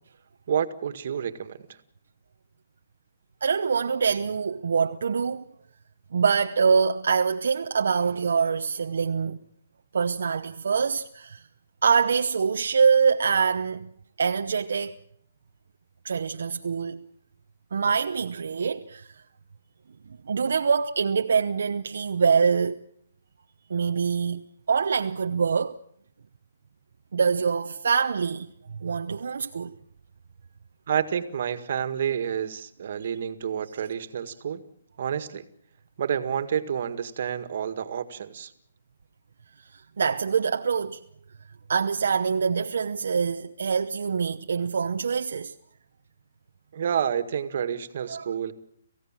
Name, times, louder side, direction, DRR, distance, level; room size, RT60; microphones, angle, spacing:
voice 1, 0.5-1.6 30.9-34.6 35.0-35.4 36.0-38.5 46.7-48.5, right 8 dB, 55° right, 1.9 m, -29 dB
voice 2, 3.4-5.4 6.1-9.4 9.9-11.4 11.8-13.9 14.2-14.9 16.0-17.0 17.7-19.1 20.3-22.8 23.7-24.4 24.7-25.8 27.1-29.7 39.7-41.0 41.7-45.5 48.1-48.3, right 5 dB, 80° right, 0.8 m, -24 dB
28.0 x 16.0 x 7.5 m
hypercardioid pair, 155°, 0 cm